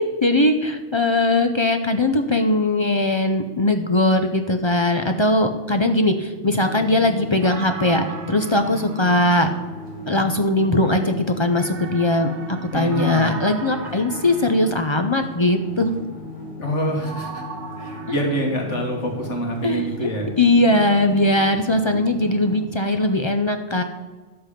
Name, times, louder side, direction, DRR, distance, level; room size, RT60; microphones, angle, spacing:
voice 1, 0.0-9.5 10.1-15.9 18.1-18.2 19.6-20.1 20.4-23.8, left 1 dB, 30° left, 6 dB, 0.5 m, -20 dB
sound 1, 6.5-22.7, left 3 dB, 5° left, 2.9 m, -37 dB
sound 2, 7.4-10.2 11.5-15.4 17.0-18.4, right 5 dB, 70° right, 1.3 m, -38 dB
voice 2, 12.7-13.4 16.6-17.4 17.8-20.3, equal, 75° left, 0 dB, 2.2 m, -26 dB
11.0 x 8.0 x 5.1 m, 1.3 s
omnidirectional pair, 1.2 m